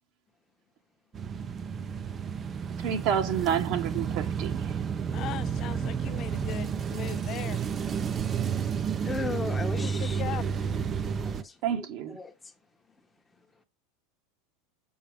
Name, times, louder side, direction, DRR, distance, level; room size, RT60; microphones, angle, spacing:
sound 1, 1.1-11.4, right 6 dB, 30° right, 0.6 m, -31 dB
voice 1, 2.8-4.8 11.6-12.2, right 8 dB, 55° right, 1.4 m, -29 dB
voice 2, 5.1-7.6 9.8-10.5, left 12 dB, 45° left, 0.4 m, -38 dB
voice 3, 9.0-10.4 10.9-12.3, left 4 dB, 15° left, 1.0 m, -37 dB
7.1 x 4.7 x 3.5 m
hypercardioid pair, 110°, 0 cm